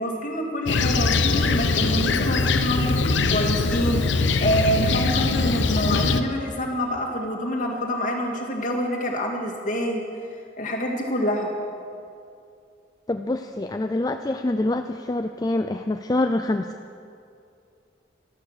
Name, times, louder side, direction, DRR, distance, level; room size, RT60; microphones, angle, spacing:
voice 1, 0.0-10.0 10.6-11.5, equal, 45° left, 0 dB, 2.1 m, -26 dB
Fixed-wing aircraft airplane, 0.7-6.2, left 3 dB, 75° left, 0.7 m, -22 dB
voice 2, 13.1-17.0, left 2 dB, 20° left, 7 dB, 0.4 m, -26 dB
13.0 x 12.5 x 6.5 m, 2.5 s
head